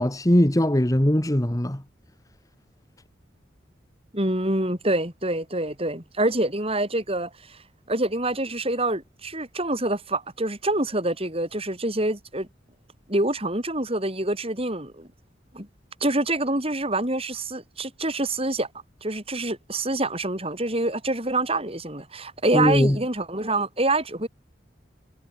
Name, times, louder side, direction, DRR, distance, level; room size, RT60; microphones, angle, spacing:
voice 1, 0.0-1.8 22.5-23.0, left 1 dB, 15° left, 1.3 m, -20 dB
voice 2, 4.1-7.6 7.9-12.5 13.1-15.1 15.5-15.7 16.0-18.7 19.0-24.3, right 2 dB, 30° right, 7.2 m, -26 dB
head